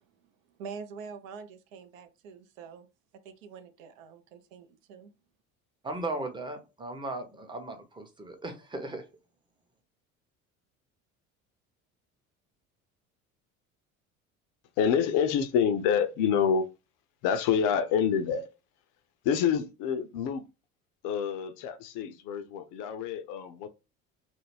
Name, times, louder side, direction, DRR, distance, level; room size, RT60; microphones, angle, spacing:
voice 1, 0.0-2.9 3.2-5.1, right 6 dB, 70° right, 0.6 m, -45 dB
voice 2, 5.8-9.0, right 2 dB, 10° right, 0.6 m, -37 dB
voice 3, 14.8-16.7 17.2-18.5 19.2-20.5 21.0-23.7, left 7 dB, 50° left, 0.5 m, -27 dB
2.3 x 2.0 x 3.2 m
figure-of-eight pair, 60°, 42 cm